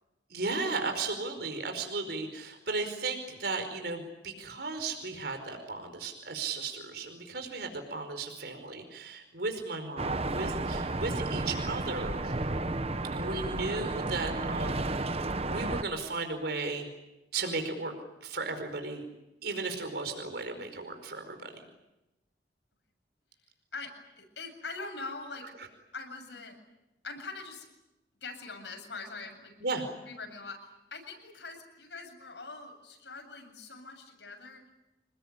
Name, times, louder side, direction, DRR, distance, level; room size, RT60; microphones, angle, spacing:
voice 1, 0.3-12.3 13.1-14.9 15.5-16.9 17.3-17.9 18.2-19.0 19.4-21.6 29.6-29.9, right 3 dB, 65° right, 6 dB, 4.9 m, -35 dB
sound 1, 10.0-15.8, right 2 dB, 35° right, 1.1 m, -32 dB
voice 2, 23.7-25.5 25.9-26.6 27.0-27.7 28.2-29.6 30.1-34.6, left 3 dB, 80° left, 4 dB, 7.7 m, -43 dB
27.5 x 21.0 x 9.9 m, 0.97 s
head